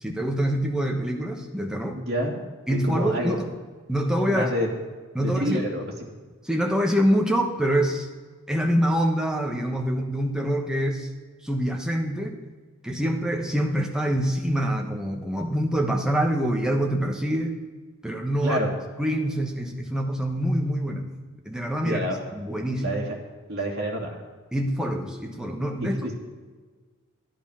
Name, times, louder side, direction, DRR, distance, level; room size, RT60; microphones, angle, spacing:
voice 1, 0.0-2.0 2.7-3.5 3.9-4.5 5.1-5.7 6.4-8.1 8.5-11.1 11.4-12.4 12.8-17.6 18.0-18.6 19.0-21.1 21.4-22.1 22.3-23.0 24.5-26.0, equal, 5° right, 2 dB, 1.1 m, -25 dB
voice 2, 2.0-2.4 2.7-3.4 4.3-4.7 5.2-5.8 18.4-18.7 21.8-22.2 22.8-23.2 23.5-24.2 26.0-26.1, equal, 50° right, -1 dB, 2.6 m, -28 dB
11.5 x 11.5 x 5.6 m, 1.5 s
head